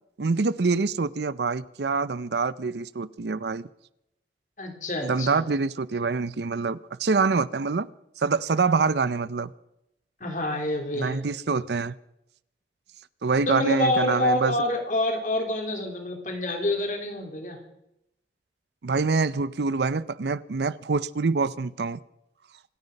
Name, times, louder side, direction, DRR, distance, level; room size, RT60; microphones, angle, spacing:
voice 1, 0.2-3.7 5.0-7.9 8.2-9.5 10.9-11.9 13.2-14.5 18.8-22.0, right 4 dB, 75° right, 0.6 m, -25 dB
voice 2, 4.6-5.4 10.2-11.2 13.5-17.6, left 1 dB, 45° left, 3.3 m, -27 dB
26.0 x 9.7 x 5.4 m
head